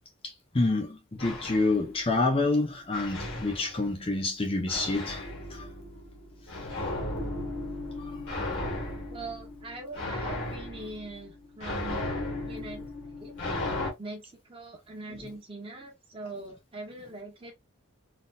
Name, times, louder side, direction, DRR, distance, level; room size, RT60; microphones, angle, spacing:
voice 1, 0.2-5.2 5.5-5.7, left 2 dB, 25° left, 0.5 m, -28 dB
sound 1, 1.2-2.4 2.9-4.1 4.7-13.9, left 2 dB, 65° left, 1.4 m, -36 dB
voice 2, 9.1-13.3 14.0-14.2 14.5-17.5, right 2 dB, 25° right, 1.1 m, -42 dB
3.9 x 2.6 x 2.3 m
head